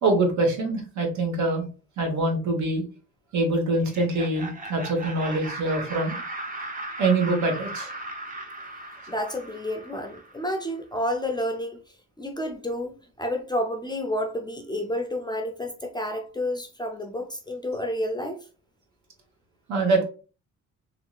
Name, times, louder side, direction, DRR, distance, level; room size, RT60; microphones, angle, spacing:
voice 1, 0.0-1.6 2.0-2.8 3.3-6.2 7.0-7.9 19.7-20.1, right 2 dB, 65° right, 1.1 m, -24 dB
Laughter, 3.8-10.6, right 2 dB, 30° right, 0.7 m, -37 dB
voice 2, 9.1-11.8 12.2-18.4, left 1 dB, 15° left, 0.5 m, -30 dB
3.1 x 2.8 x 2.3 m
cardioid pair, 90°, 30 cm